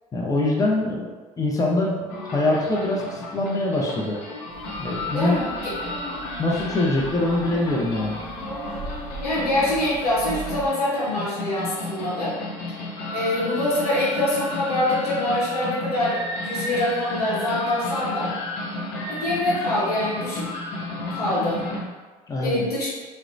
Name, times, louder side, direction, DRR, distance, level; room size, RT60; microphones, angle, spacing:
voice 1, 0.1-2.1 2.3-4.2 4.8-5.4 6.4-8.2 22.3-22.6, left 2 dB, 20° left, -2 dB, 0.6 m, -23 dB
sound 1, 2.1-21.8, left 2 dB, 55° left, 0.6 m, -33 dB
sound 2, 4.5-10.7, right 3 dB, 50° right, 0.5 m, -39 dB
voice 2, 5.1-5.7 9.2-12.4 13.1-18.3 19.1-20.5 21.1-21.6 22.4-22.9, left 1 dB, 90° left, -7 dB, 0.8 m, -24 dB
2.8 x 2.1 x 2.5 m, 1.3 s
hypercardioid pair, 65°, 19 cm